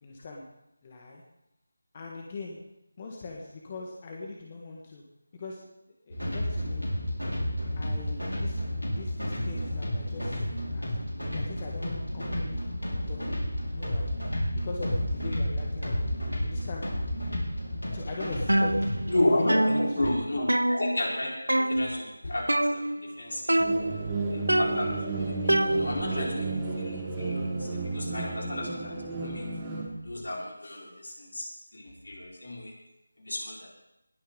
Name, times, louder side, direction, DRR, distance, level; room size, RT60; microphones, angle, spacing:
voice 1, 0.0-0.4 0.8-1.2 1.9-2.6 3.0-5.0 5.3-5.7 6.1-6.8 7.8-8.5 8.9-10.9 11.3-12.6 13.1-14.1 14.5-16.9 17.9-18.7 19.2-20.2, left 3 dB, 30° left, -1 dB, 1.7 m, -41 dB
sound 1, 6.1-19.2, left 1 dB, 85° left, 4.7 m, -31 dB
sound 2, 18.5-19.2 19.5-21.2 21.5-22.0 22.5-23.2 23.5-24.1 24.5-26.2, right 1 dB, 80° right, 0.6 m, -26 dB
voice 2, 19.1-23.6 24.3-26.5 26.8-29.4 30.0-31.5 31.7-32.7 33.2-33.7, left 1 dB, 65° left, -2 dB, 4.7 m, -32 dB
sound 3, 23.6-29.9, right 3 dB, 15° right, 2.6 m, -32 dB
20.0 x 10.0 x 3.9 m, 0.87 s
figure-of-eight pair, 165°, 0 cm